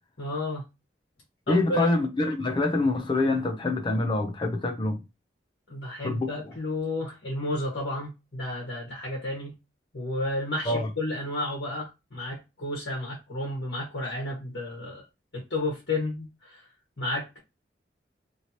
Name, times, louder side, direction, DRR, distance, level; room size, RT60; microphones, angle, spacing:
voice 1, 0.2-0.6 1.5-1.9 5.7-9.5 9.9-15.0 15.3-16.7 17.0-17.4, left 1 dB, 85° left, 1.4 m, -32 dB
voice 2, 1.5-5.0 6.0-6.3 10.7-10.9, left 2 dB, 25° left, 0.5 m, -25 dB
3.0 x 2.8 x 2.8 m
head